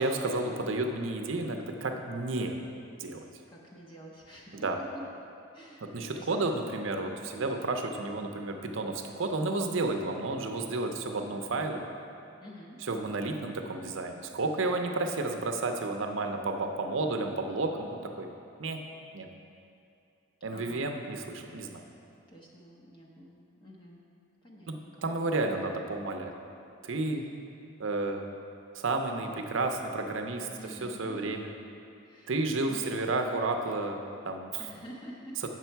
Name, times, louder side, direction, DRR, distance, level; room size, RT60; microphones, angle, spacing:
voice 1, 0.0-2.6 3.0-3.3 4.5-4.8 5.8-11.8 12.8-18.3 18.6-18.8 19.1-19.3 20.4-21.8 24.7-26.3 26.8-27.3 27.8-28.2 28.7-31.5 32.3-34.6 35.4-35.5, right 2 dB, 60° right, 4 dB, 0.6 m, -31 dB
voice 2, 3.5-4.7 5.5-6.6 7.1-7.3 12.4-13.2 20.5-20.9 22.3-24.0 24.4-25.1 27.1-27.3 30.6-31.3 32.0-32.3 32.7-32.8 34.6-35.4, equal, 20° left, -3 dB, 0.7 m, -48 dB
8.2 x 6.1 x 4.5 m, 2.6 s
head